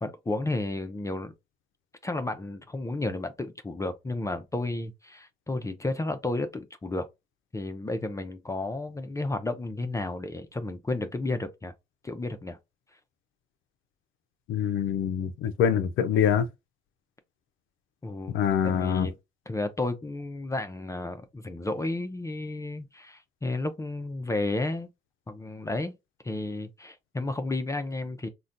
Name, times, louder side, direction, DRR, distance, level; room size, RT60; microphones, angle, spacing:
voice 1, 0.0-1.3 2.0-7.1 7.5-11.7 12.0-12.6 18.0-18.4 18.6-19.2 19.5-24.9 25.3-26.0 26.2-28.3, left 2 dB, 15° left, 0.4 m, -32 dB
voice 2, 14.5-16.5 18.3-19.1, left 8 dB, 80° left, 0.4 m, -25 dB
3.8 x 2.2 x 2.5 m
cardioid pair, 90°, 20 cm